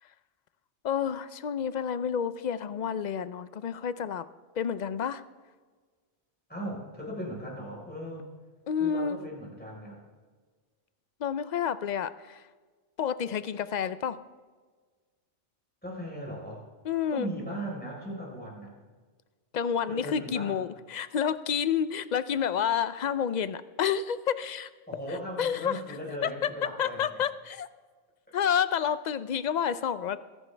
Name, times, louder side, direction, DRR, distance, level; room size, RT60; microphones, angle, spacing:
voice 1, 0.8-4.2 4.6-5.2 8.7-9.2 11.2-12.5 13.0-14.2 16.8-17.3 19.5-24.7 25.1-25.8 26.2-27.7 28.3-30.2, left 8 dB, 50° left, 14 dB, 0.5 m, -29 dB
voice 2, 6.5-8.3 8.8-10.0 15.8-16.6 17.1-18.7 19.9-20.5 24.9-27.2, equal, 10° left, -3 dB, 4.1 m, -38 dB
23.5 x 11.0 x 3.3 m, 1.4 s
omnidirectional pair, 1.2 m